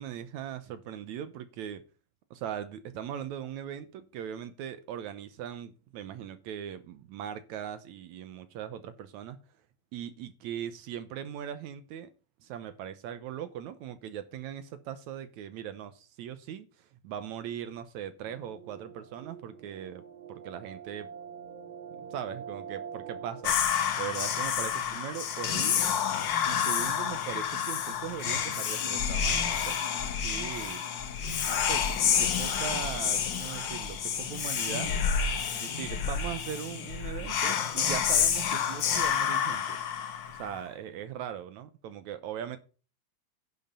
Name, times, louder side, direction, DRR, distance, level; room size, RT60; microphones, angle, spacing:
voice 1, 0.0-1.8 2.3-9.4 9.9-12.1 12.4-20.0 20.3-21.1 22.1-26.0 26.5-30.8 31.5-34.9 35.5-39.8 40.3-42.6, right 9 dB, 75° right, 1.9 m, -40 dB
sound 1, 18.2-23.5, right 7 dB, 90° right, 2.9 m, -45 dB
Whispering, 23.4-40.6, left 7 dB, 75° left, 1.0 m, -29 dB
10.5 x 6.4 x 5.4 m
omnidirectional pair, 3.8 m